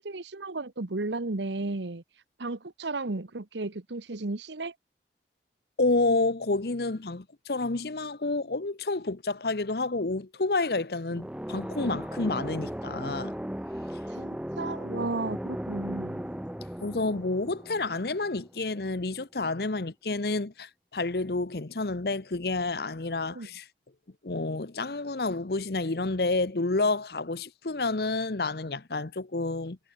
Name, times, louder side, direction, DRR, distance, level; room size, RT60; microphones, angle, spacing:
voice 1, 0.0-2.0 2.4-4.7 14.1-16.3 23.3-23.5, right 2 dB, 85° right, 1.2 m, -34 dB
voice 2, 5.8-13.3 16.8-23.6 24.2-29.8, left 3 dB, 60° left, 1.0 m, -29 dB
sound 1, 11.1-18.8, equal, 5° right, 0.7 m, -37 dB
head